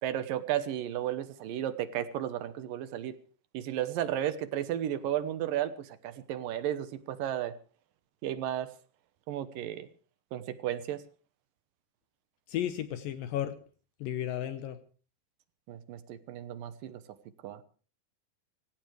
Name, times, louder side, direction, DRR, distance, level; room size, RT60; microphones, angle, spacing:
voice 1, 0.0-3.1 3.5-7.5 8.2-8.7 9.3-9.9 10.3-11.0 15.7-17.0 17.4-17.6, right 11 dB, 75° right, 12 dB, 2.5 m, -33 dB
voice 2, 12.5-13.6 14.0-14.8, left 11 dB, 75° left, 10 dB, 2.5 m, -33 dB
25.5 x 16.0 x 3.3 m, 0.39 s
omnidirectional pair, 4.4 m